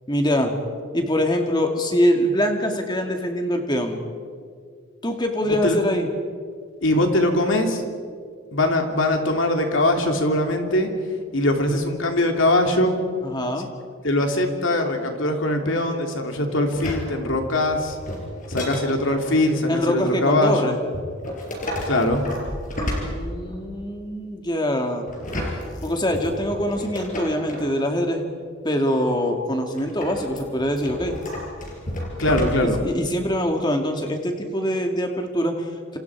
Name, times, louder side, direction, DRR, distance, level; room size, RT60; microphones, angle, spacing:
voice 1, 0.1-0.5 0.9-4.0 5.0-6.1 13.2-13.7 19.7-20.8 22.8-25.1 25.8-28.2 28.6-31.2 32.6-36.0, equal, 20° left, 4 dB, 2.2 m, -24 dB
voice 2, 6.8-7.8 8.5-10.9 11.3-13.0 14.0-18.0 18.5-20.7 21.8-22.2 32.2-32.8, left 1 dB, 60° left, 3 dB, 2.8 m, -21 dB
sound 1, 16.7-19.4 20.9-23.7 25.1-27.7 29.8-32.9 33.2-33.3, left 1 dB, 35° left, 5.0 m, -31 dB
28.0 x 27.5 x 4.8 m, 2.1 s
head